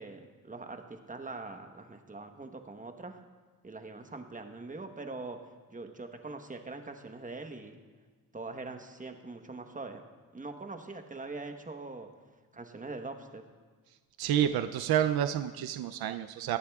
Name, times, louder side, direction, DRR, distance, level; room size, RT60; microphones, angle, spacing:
voice 1, 0.0-3.2 3.6-5.4 5.7-7.8 8.3-10.0 10.3-12.1 12.5-13.4, right 3 dB, 20° right, 5 dB, 1.1 m, -42 dB
voice 2, 14.2-16.6, right 10 dB, 80° right, 9 dB, 0.5 m, -29 dB
21.0 x 8.5 x 2.4 m, 1.4 s
cardioid pair, 80°, 37 cm